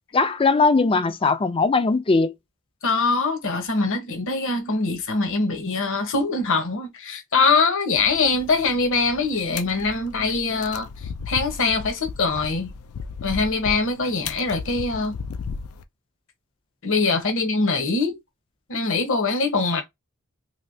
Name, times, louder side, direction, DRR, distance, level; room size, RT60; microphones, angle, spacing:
voice 1, 0.1-2.3, left 4 dB, 25° left, 0.4 m, -19 dB
voice 2, 2.8-10.9 11.3-12.7 13.2-15.1 16.8-18.2 18.7-19.8, left 3 dB, 65° left, 1.1 m, -23 dB
sound 1, 7.9-15.8, left 5 dB, 90° left, 0.4 m, -36 dB
3.2 x 2.7 x 2.6 m
head